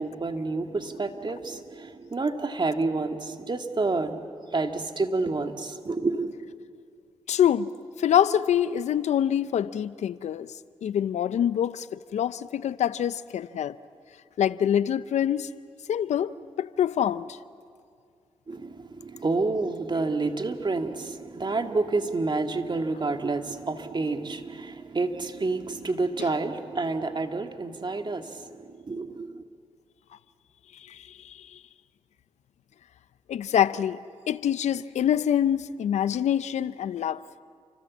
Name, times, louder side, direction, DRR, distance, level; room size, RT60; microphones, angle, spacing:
voice 1, 0.0-6.5 18.5-29.4, right 3 dB, 40° right, 2.1 m, -29 dB
voice 2, 7.3-7.7 8.0-10.5 10.8-13.8 14.4-15.5 15.9-17.4 26.2-26.3 30.9-31.5 33.3-34.0 34.3-37.2, left 9 dB, 80° left, 0.6 m, -25 dB
29.5 x 25.0 x 7.4 m
cardioid pair, 50°, 12 cm